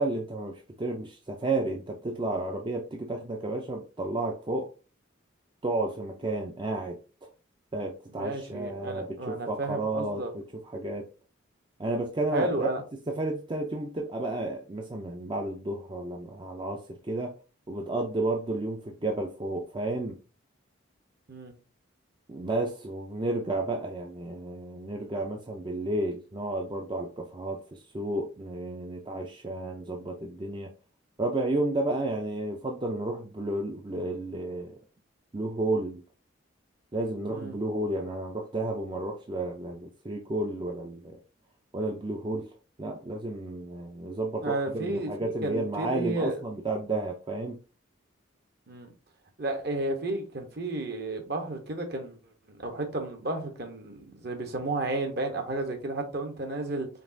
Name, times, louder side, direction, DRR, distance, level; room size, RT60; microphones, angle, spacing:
voice 1, 0.0-4.7 5.6-7.3 7.7-10.4 10.7-11.1 11.8-12.7 13.1-17.4 17.7-20.2 22.3-30.7 31.2-34.7 35.3-36.0 36.9-41.2 41.7-42.5 42.8-47.6, right 2 dB, 25° right, 0.4 m, -32 dB
voice 2, 8.1-10.3 12.3-12.8 21.3-21.5 37.3-37.5 44.4-46.4 48.7-48.9 49.4-52.2 52.5-56.9, right 2 dB, 55° right, 1.0 m, -32 dB
5.1 x 2.9 x 2.6 m
head